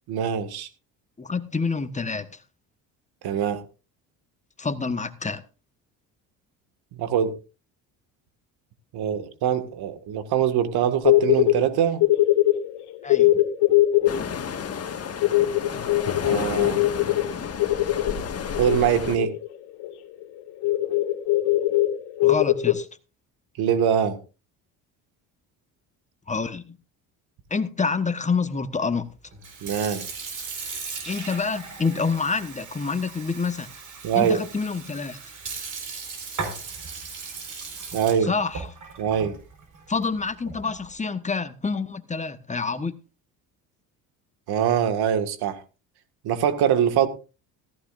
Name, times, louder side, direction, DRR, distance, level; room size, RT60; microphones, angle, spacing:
voice 1, 0.1-0.7 3.2-3.6 7.0-7.3 8.9-12.0 16.2-16.8 18.6-19.3 23.6-24.2 29.6-30.1 34.0-34.4 37.9-38.3 39.0-39.3 44.5-45.6 46.2-47.1, right 9 dB, 70° right, 1.9 m, -23 dB
voice 2, 1.2-2.4 4.6-5.4 13.0-13.4 22.2-22.9 26.3-26.8 27.5-29.1 31.1-33.7 34.1-35.2 38.2-38.7 39.9-43.0, left 4 dB, 20° left, 1.2 m, -27 dB
sound 1, 11.1-11.6 12.0-19.5 19.8-19.9 20.2-20.3 20.6-22.7, left 15 dB, 80° left, 2.3 m, -21 dB
sound 2, 14.1-19.2, left 6 dB, 35° left, 1.7 m, -32 dB
Sink (filling or washing) / Fill (with liquid), 29.3-40.9, right 4 dB, 50° right, 4.6 m, -37 dB
15.0 x 14.5 x 2.6 m
supercardioid pair, 90°, 40 cm